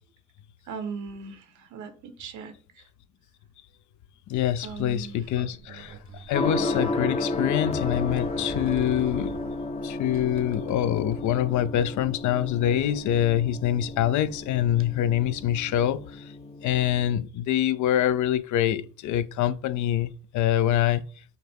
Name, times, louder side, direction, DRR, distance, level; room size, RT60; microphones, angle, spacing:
voice 1, 0.7-2.8 4.6-5.2, right 5 dB, 75° right, 0.9 m, -38 dB
voice 2, 4.3-9.4 9.8-16.3 16.6-21.0, left 11 dB, 75° left, 0.5 m, -25 dB
Sliding door, 4.3-14.9, right 5 dB, 45° right, 0.6 m, -47 dB
Gong, 6.3-17.2, left 2 dB, 20° left, 0.5 m, -32 dB
5.7 x 2.1 x 3.5 m
cardioid pair, 90°, 30 cm